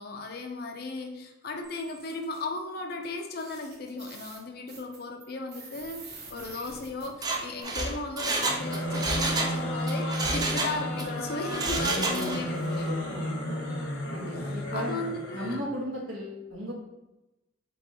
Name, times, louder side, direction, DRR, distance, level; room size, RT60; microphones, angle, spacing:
voice 1, 0.0-12.9 14.3-15.6, left 3 dB, 50° left, 4 dB, 0.6 m, -36 dB
sound 1, 1.6-2.4 3.0-3.1 3.4-7.6, right 4 dB, 55° right, 1.2 m, -47 dB
Mechanisms, 7.1-9.6 9.9-11.1 11.5-12.5 12.8-12.9, right 3 dB, 20° right, 0.4 m, -30 dB
sound 2, 8.4-15.7, equal, 70° left, 1.0 m, -33 dB
voice 2, 11.9-13.4 14.1-15.0 15.3-16.7, equal, 85° right, -3 dB, 1.5 m, -36 dB
4.6 x 3.5 x 2.8 m, 0.96 s
head